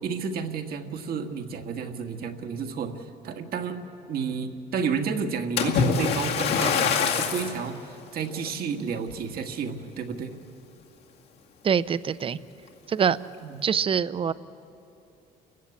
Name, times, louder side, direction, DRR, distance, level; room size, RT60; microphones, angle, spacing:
voice 1, 0.0-10.3 13.4-13.6, right 6 dB, 65° right, 5 dB, 1.7 m, -31 dB
Splash splatter, 5.6-7.6 8.3-8.5 9.1-9.2, left 6 dB, 75° left, 2.2 m, -24 dB
voice 2, 11.6-12.4 12.9-13.2 13.6-14.3, right 7 dB, 30° right, 16 dB, 0.6 m, -24 dB
29.0 x 15.0 x 8.6 m, 2.9 s
cardioid pair, 110°, 17 cm